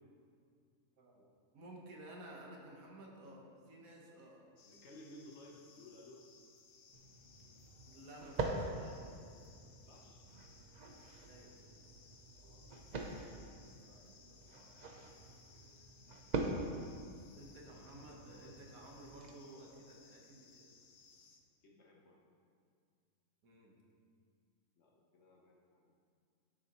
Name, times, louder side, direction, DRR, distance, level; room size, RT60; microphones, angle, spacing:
voice 1, 1.0-1.3 1.5-4.4 7.9-9.2 11.2-11.6 12.4-14.7 17.3-20.7 23.4-23.7, right 1 dB, 75° right, -1 dB, 1.6 m, -55 dB
sound 1, 4.6-21.4, left 5 dB, 90° left, 1.3 m, -63 dB
voice 2, 4.6-6.3 9.7-10.3 12.5-13.1 14.4-15.7 21.6-22.2 24.8-26.0, left 1 dB, 55° left, -1 dB, 1.1 m, -59 dB
sound 2, 6.9-19.3, right 3 dB, 50° right, 0.5 m, -44 dB
11.0 x 6.5 x 3.0 m, 2.2 s
omnidirectional pair, 1.5 m